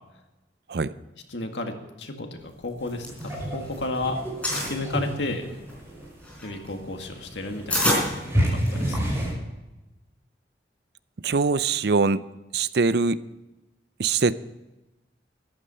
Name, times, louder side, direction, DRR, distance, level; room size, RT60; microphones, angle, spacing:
voice 1, 1.3-4.2 4.5-5.5 6.4-9.2, left 2 dB, 85° left, 4 dB, 1.9 m, -33 dB
sound 1, 2.7-3.9 4.1-4.8 5.4-9.0, left 1 dB, 10° left, 4.2 m, -28 dB
sound 2, 2.8-9.3, equal, 15° right, 6.0 m, -30 dB
voice 2, 11.2-12.2 12.5-13.2 14.0-14.3, right 4 dB, 60° right, 16 dB, 0.5 m, -22 dB
14.0 x 11.5 x 5.6 m, 1.0 s
head